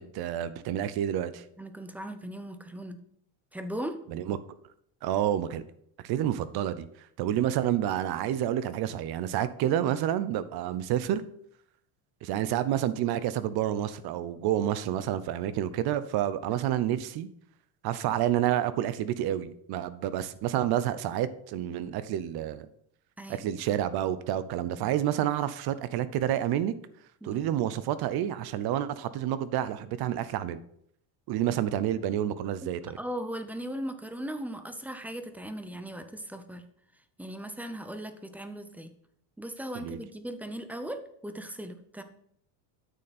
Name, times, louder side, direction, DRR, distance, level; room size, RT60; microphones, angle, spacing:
voice 1, 0.0-1.4 4.1-4.4 5.0-5.6 6.0-6.9 7.2-11.2 12.2-17.3 17.8-22.7 23.3-26.7 27.2-30.6 31.3-33.0 39.7-40.0, right 11 dB, 55° right, 15 dB, 0.7 m, -29 dB
voice 2, 1.6-3.0 3.5-4.0 16.5-16.6 23.2-23.5 27.2-27.4 31.4-31.7 32.6-32.7 33.0-36.7 37.2-38.9 39.4-42.0, right 1 dB, 5° right, 9 dB, 0.5 m, -38 dB
9.0 x 6.7 x 4.2 m, 0.69 s
cardioid pair, 135°, 47 cm